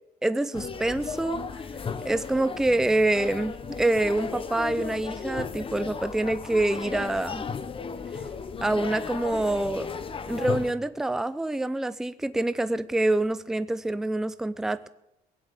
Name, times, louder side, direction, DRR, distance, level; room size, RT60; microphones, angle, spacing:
voice 1, 0.2-1.4 2.0-7.4 8.6-9.9 10.2-14.9, right 2 dB, 5° right, 14 dB, 0.5 m, -26 dB
sound 1, 0.5-10.7, left 5 dB, 30° left, 0.9 m, -35 dB
19.0 x 8.2 x 6.6 m, 0.85 s
cardioid pair, 110°, 17 cm